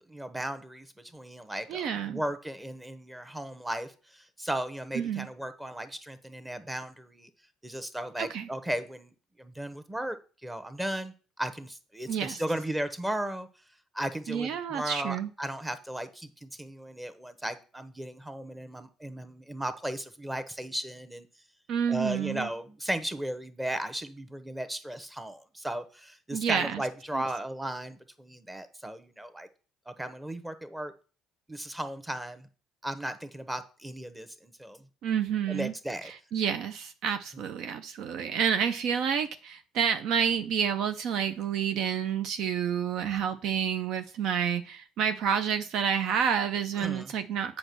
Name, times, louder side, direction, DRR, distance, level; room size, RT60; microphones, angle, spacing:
voice 1, 0.1-7.3 7.6-10.2 10.4-13.5 13.9-21.3 21.9-29.5 29.9-30.9 31.5-32.5 32.8-34.9 35.5-36.1 46.7-47.1, right 1 dB, 10° right, 11 dB, 1.2 m, -36 dB
voice 2, 1.7-2.2 5.0-5.3 8.2-8.5 12.1-12.4 14.3-15.3 21.7-22.5 26.3-26.8 27.1-27.2 35.0-35.7 36.0-47.6, right 8 dB, 60° right, 9 dB, 0.5 m, -29 dB
7.9 x 5.3 x 6.0 m, 0.38 s
hypercardioid pair, 50°, 0 cm